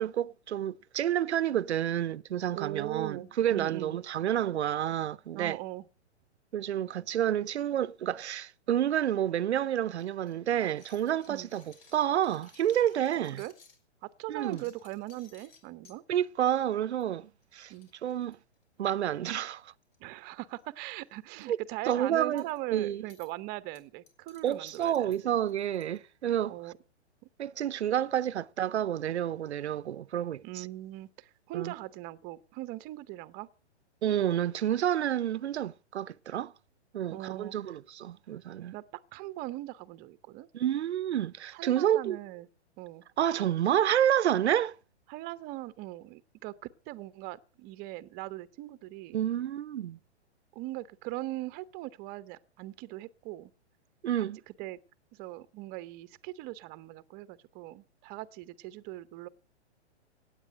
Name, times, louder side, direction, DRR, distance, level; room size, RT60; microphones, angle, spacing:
voice 1, 0.0-5.6 6.5-13.4 14.3-14.6 16.1-17.7 18.0-18.4 18.8-19.7 21.5-21.6 21.9-22.4 22.7-23.0 24.4-26.7 27.4-30.7 31.5-31.7 34.0-36.5 36.9-38.7 40.5-42.2 43.2-44.8 49.1-50.0 54.0-54.4, right 10 dB, 70° right, 0.7 m, -29 dB
voice 2, 2.5-4.0 5.3-5.8 11.3-11.5 13.3-13.5 14.0-16.0 17.7-17.9 20.0-25.1 26.5-26.7 27.2-27.3 30.4-33.5 37.1-37.5 38.7-40.5 41.5-42.5 42.8-43.0 45.1-49.2 50.5-53.5 54.2-54.3 54.6-54.8 55.1-59.3, right 17 dB, 25° right, 0.8 m, -40 dB
sound 1, 10.0-13.8 14.3-16.0 16.5-16.7 17.0-17.1 17.4-17.5 17.7-19.1 19.8-20.2 20.5-20.6 21.0-21.4 22.4-22.6 23.1-23.3 23.7-26.0, left 5 dB, 55° left, 4.4 m, -60 dB
16.5 x 9.3 x 7.6 m
hypercardioid pair, 125°, 35 cm